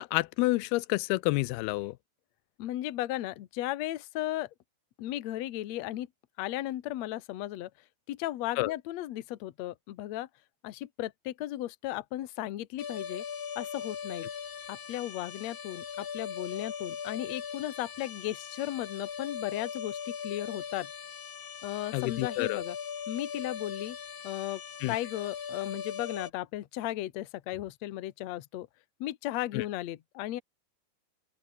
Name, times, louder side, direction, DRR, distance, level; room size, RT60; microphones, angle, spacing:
voice 1, 0.0-2.0 8.6-8.7 21.9-22.6 24.8-24.9 29.5-29.6, left 21 dB, 90° left, 2.6 m, -29 dB
voice 2, 2.6-4.5 5.0-6.1 6.4-7.7 8.1-10.3 10.6-13.2 13.6-14.3 14.7-20.9 21.6-22.8 23.1-24.0 24.2-24.6 24.9-28.7 29.0-30.4, left 14 dB, 65° left, 1.9 m, -35 dB
sound 1, 12.8-26.3, left 7 dB, 45° left, 1.9 m, -40 dB
open air
omnidirectional pair, 4.4 m